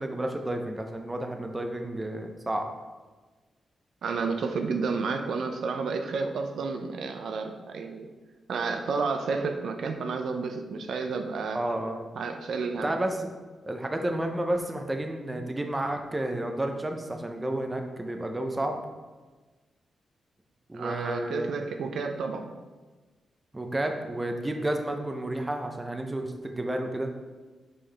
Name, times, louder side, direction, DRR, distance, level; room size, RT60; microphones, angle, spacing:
voice 1, 0.0-2.7 11.5-12.0 12.8-13.3 13.6-18.8 20.7-21.6 23.5-27.1, right 1 dB, 15° right, 4 dB, 0.6 m, -31 dB
voice 2, 4.0-8.1 8.5-11.6 12.2-12.9 20.7-22.5, right 4 dB, 75° right, 5 dB, 0.5 m, -31 dB
5.4 x 5.3 x 3.3 m, 1.3 s
wide cardioid pair, 120°, 0 cm